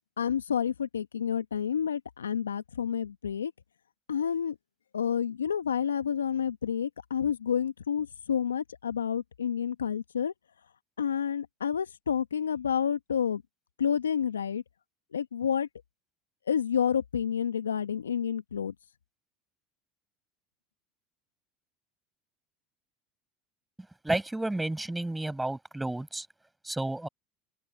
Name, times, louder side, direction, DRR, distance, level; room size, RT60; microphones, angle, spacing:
voice 1, 0.2-3.5 4.1-4.6 4.9-10.3 11.0-13.4 13.8-14.6 15.1-15.7 16.5-18.7, left 8 dB, 85° left, 1.3 m, -29 dB
voice 2, 24.0-26.3 26.6-27.1, right 2 dB, 10° right, 6.4 m, -31 dB
open air
hypercardioid pair, 75°, 0 cm